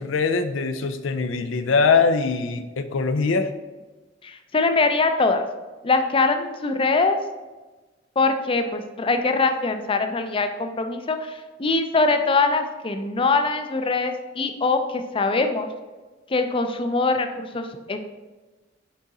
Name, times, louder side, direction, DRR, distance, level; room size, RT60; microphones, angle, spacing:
voice 1, 0.0-3.5, left 4 dB, 80° left, 9 dB, 0.5 m, -22 dB
voice 2, 4.2-5.4 5.8-7.2 8.2-15.7 16.3-18.0, left 3 dB, 25° left, 7 dB, 0.4 m, -23 dB
6.1 x 3.8 x 4.1 m, 1.2 s
head